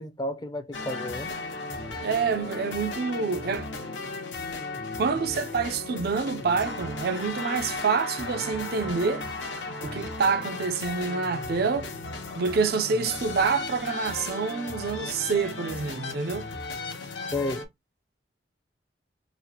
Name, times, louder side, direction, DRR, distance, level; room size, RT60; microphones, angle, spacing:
voice 1, 0.0-1.3 17.3-17.6, left 1 dB, 20° left, 0.4 m, -31 dB
sound 1, 0.7-17.6, left 3 dB, 75° left, 0.9 m, -35 dB
voice 2, 2.0-3.7 5.0-9.3 9.8-11.9 12.4-16.5, right 5 dB, 55° right, 0.4 m, -27 dB
3.9 x 2.0 x 2.8 m
head